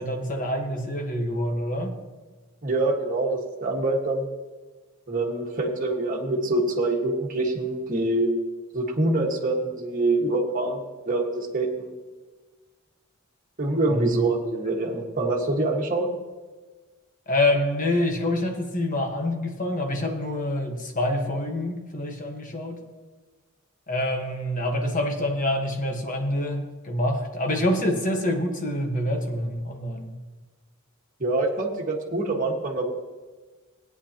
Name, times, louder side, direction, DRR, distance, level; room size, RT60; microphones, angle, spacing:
voice 1, 0.0-1.9 13.9-14.2 17.3-22.8 23.9-30.1, left 1 dB, 40° left, 3 dB, 1.4 m, -26 dB
voice 2, 2.6-4.3 5.1-8.3 8.7-11.9 13.6-16.1 31.2-32.9, right 2 dB, 40° right, -1 dB, 1.6 m, -25 dB
17.5 x 9.4 x 2.9 m, 1.3 s
head